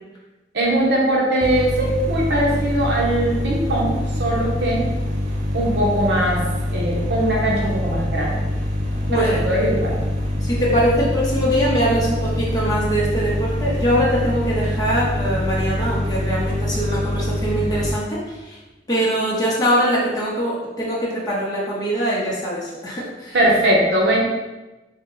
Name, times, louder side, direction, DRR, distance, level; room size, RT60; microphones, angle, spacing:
voice 1, 0.5-4.8 5.5-8.4 9.1-9.9 23.3-24.2, right 1 dB, 70° right, -3 dB, 0.8 m, -20 dB
sound 1, 1.4-17.9, left 1 dB, 40° right, 0.5 m, -24 dB
voice 2, 10.4-18.2 18.5-18.6 18.9-23.4, equal, 20° left, -7 dB, 0.7 m, -22 dB
3.6 x 2.1 x 3.8 m, 1.1 s
head